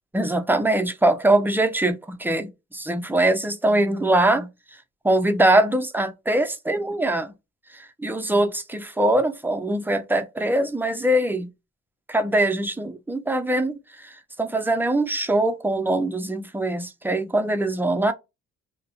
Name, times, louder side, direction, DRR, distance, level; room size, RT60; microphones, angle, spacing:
voice 1, 0.1-4.5 5.0-7.3 7.7-11.5 12.1-18.1, right 1 dB, 5° right, 0.4 m, -22 dB
2.4 x 2.1 x 2.9 m
cardioid pair, 90°, 30 cm